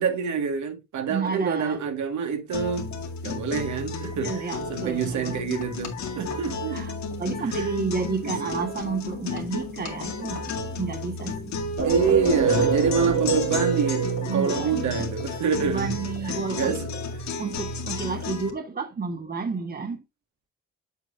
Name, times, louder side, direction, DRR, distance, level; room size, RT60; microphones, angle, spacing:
voice 1, 0.0-2.9 3.2-4.3 4.7-6.8 7.6-7.7 8.2-8.5 11.8-15.9 16.3-16.9, right 5 dB, 70° right, 1.9 m, -27 dB
voice 2, 1.1-1.8 4.1-5.4 6.7-6.9 7.2-11.6 14.3-15.1 15.6-16.8 17.4-20.0, right 5 dB, 30° right, 1.5 m, -31 dB
sound 1, 2.5-18.5, left 2 dB, 65° left, 2.1 m, -32 dB
sound 2, 11.8-15.4, right 5 dB, 90° right, 3.5 m, -26 dB
7.7 x 7.2 x 2.6 m
cardioid pair, 90°, 30 cm